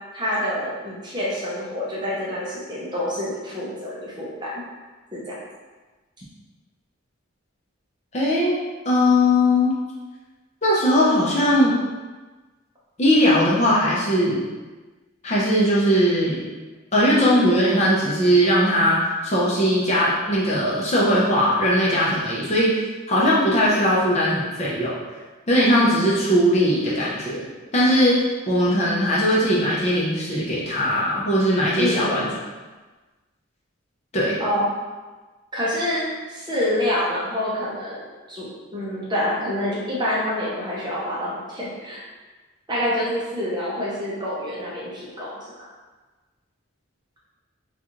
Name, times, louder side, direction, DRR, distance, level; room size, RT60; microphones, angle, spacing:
voice 1, 0.1-4.6 5.1-5.3 31.8-32.2 34.4-34.7 35.5-42.0 42.7-45.5, left 1 dB, 20° right, -6 dB, 0.7 m, -27 dB
voice 2, 8.1-8.6 8.8-9.8 10.6-11.8 13.0-14.4 15.2-16.4 16.9-22.7 23.1-25.0 25.5-27.5 27.7-28.2 28.5-32.3 34.1-34.4, equal, 30° left, -6 dB, 0.7 m, -19 dB
3.8 x 2.4 x 3.0 m, 1.3 s
head